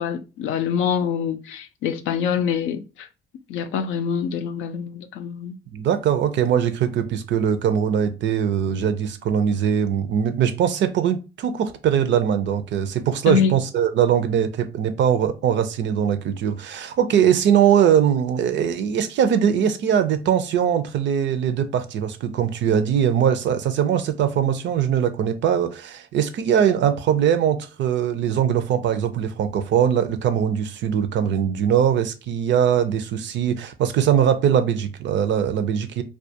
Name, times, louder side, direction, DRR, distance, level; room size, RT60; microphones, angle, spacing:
voice 1, 0.0-3.1 3.5-5.6 13.3-13.6 17.2-17.4, left 7 dB, 85° left, 0.4 m, -25 dB
voice 2, 5.7-36.0, right 8 dB, 65° right, 0.5 m, -21 dB
2.3 x 2.2 x 2.7 m
cardioid pair, 90°, 20 cm